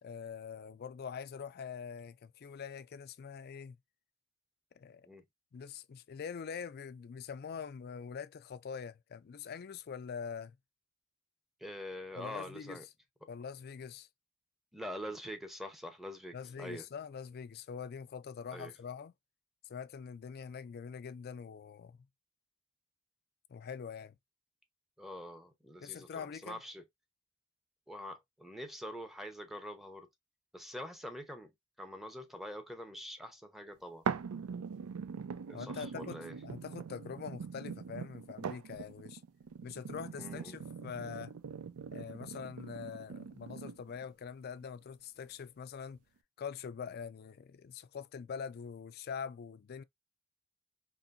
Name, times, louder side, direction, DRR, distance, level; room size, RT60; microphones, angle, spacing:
voice 1, 0.0-3.8 4.7-5.1 5.5-10.6 12.2-12.8 13.3-14.1 16.3-19.1 19.7-22.0 23.5-24.1 25.8-26.6 35.5-39.2 39.6-41.3 41.9-46.0 46.4-49.8, left 6 dB, 45° left, 0.3 m, -44 dB
voice 2, 11.6-12.8 14.7-16.9 18.5-18.7 25.0-26.8 27.9-30.1 30.5-31.5 31.8-34.0 35.5-36.3 40.2-40.6, equal, ahead, 0.7 m, -45 dB
sound 1, 34.1-44.0 44.6-44.7, right 6 dB, 90° right, 0.4 m, -42 dB
4.3 x 3.1 x 2.5 m
head